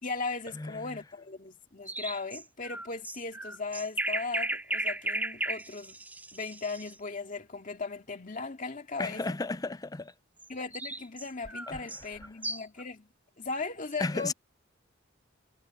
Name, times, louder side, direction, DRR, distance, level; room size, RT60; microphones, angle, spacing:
voice 1, 0.0-5.9 6.3-9.4 10.5-13.1 13.4-14.3, left 4 dB, 40° left, 2.2 m, -37 dB
voice 2, 0.5-0.9 9.0-10.1 11.7-11.8 14.0-14.3, left 3 dB, 20° left, 0.5 m, -33 dB
sound 1, 1.9-7.0 10.4-12.8, right 1 dB, 10° right, 2.8 m, -35 dB
head